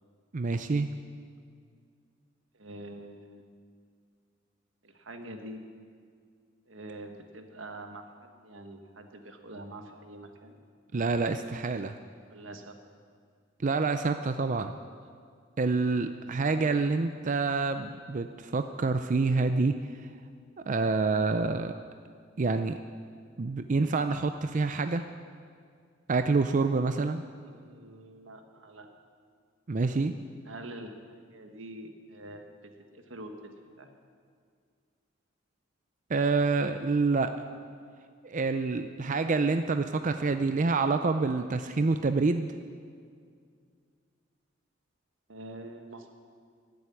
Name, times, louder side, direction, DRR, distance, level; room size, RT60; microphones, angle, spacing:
voice 1, 0.3-0.9 10.9-12.0 13.6-14.8 15.6-19.7 20.7-21.7 22.4-22.8 23.4-25.0 26.1-27.2 29.7-30.1 36.1-37.3 38.2-42.5, right 3 dB, 40° right, 8 dB, 0.5 m, -27 dB
voice 2, 2.5-3.4 4.8-5.6 6.7-10.6 12.3-12.8 27.4-28.9 30.4-33.3 33.8-33.9 45.3-46.1, right 1 dB, 85° right, 5 dB, 1.5 m, -45 dB
14.5 x 7.8 x 9.6 m, 2.1 s
head